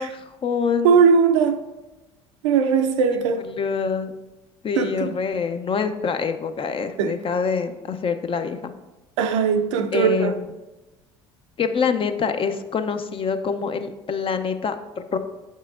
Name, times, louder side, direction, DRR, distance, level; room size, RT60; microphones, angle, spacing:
voice 1, 0.0-1.0 3.5-4.1 4.6-8.7 9.9-10.4 11.6-15.2, left 6 dB, 35° left, 0.6 m, -25 dB
voice 2, 0.8-1.6 2.4-3.5 4.8-5.1 7.0-7.1 9.2-10.4, right 6 dB, 85° right, 0.5 m, -19 dB
7.8 x 5.5 x 2.5 m
hypercardioid pair, 70°, 15 cm